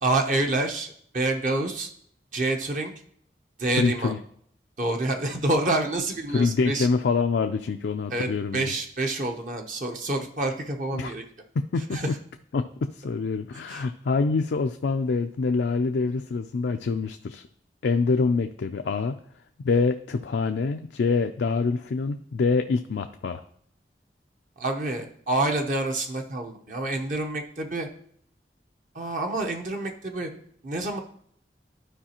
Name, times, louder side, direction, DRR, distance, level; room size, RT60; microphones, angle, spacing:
voice 1, 0.0-1.9 2.3-2.9 3.6-4.2 4.8-6.9 8.1-11.2 11.9-12.2 13.7-13.8 24.6-27.9 28.9-30.3 30.6-31.0, right 2 dB, 45° right, 3 dB, 0.7 m, -27 dB
voice 2, 3.7-4.2 6.3-8.7 10.9-11.1 11.6-12.0 12.5-17.4 17.8-19.2 19.6-23.4, left 4 dB, 80° left, 6 dB, 0.4 m, -25 dB
12.5 x 4.8 x 2.9 m, 0.64 s
head